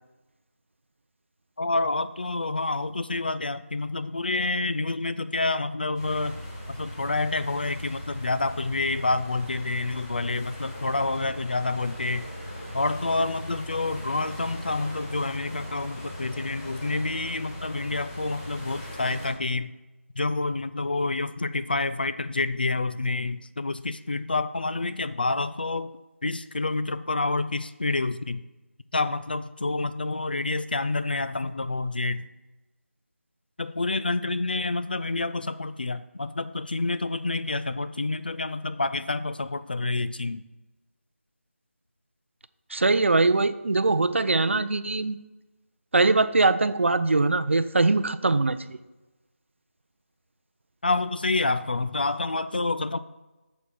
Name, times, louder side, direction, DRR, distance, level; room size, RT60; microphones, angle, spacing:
voice 1, 1.6-6.4 6.7-12.3 12.7-19.7 20.2-25.9 26.2-28.4 28.9-32.3 33.6-40.4 50.8-53.0, left 3 dB, 40° left, 13 dB, 0.4 m, -28 dB
sound 1, 5.9-19.3, equal, 20° left, 2.6 m, -39 dB
voice 2, 42.7-45.2 45.9-48.8, right 3 dB, 60° right, 14 dB, 0.5 m, -22 dB
8.7 x 7.0 x 4.6 m, 1.1 s
figure-of-eight pair, 175°, 8 cm